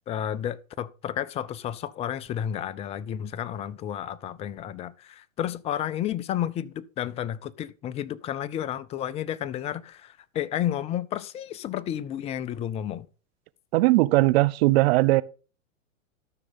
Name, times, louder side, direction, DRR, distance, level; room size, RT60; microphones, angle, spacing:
voice 1, 0.1-13.1, left 10 dB, 15° left, 0.4 m, -31 dB
voice 2, 13.7-15.2, right 20 dB, 50° right, 0.8 m, -19 dB
13.5 x 6.3 x 4.0 m
hypercardioid pair, 120°, 39 cm